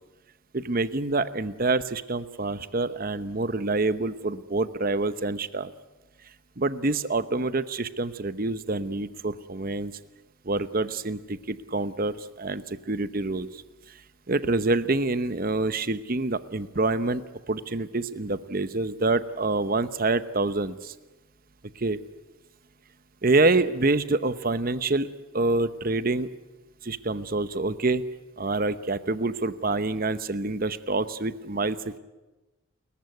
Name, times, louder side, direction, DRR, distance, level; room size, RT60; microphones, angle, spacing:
voice 1, 0.5-5.7 6.6-9.9 10.4-13.6 14.3-20.9 21.8-22.0 23.2-25.1 25.3-26.3 26.8-28.0 28.4-32.0, right 2 dB, 40° right, 13 dB, 0.9 m, -26 dB
29.5 x 14.5 x 9.4 m, 1.1 s
head